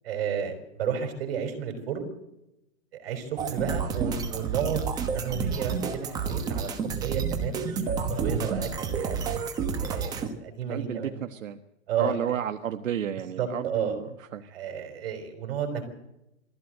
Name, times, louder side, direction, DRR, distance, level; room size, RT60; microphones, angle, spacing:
voice 1, 0.0-2.1 2.9-4.9 5.1-9.2 9.8-11.2 11.9-12.4 13.4-14.0 14.5-15.9, right 7 dB, 50° right, 7 dB, 5.5 m, -32 dB
sound 1, 3.4-10.3, right 5 dB, 10° right, 1.0 m, -30 dB
voice 2, 10.7-11.6 12.0-14.4, right 9 dB, 80° right, 7 dB, 1.5 m, -32 dB
21.5 x 15.5 x 7.8 m, 0.89 s
hypercardioid pair, 165°, 39 cm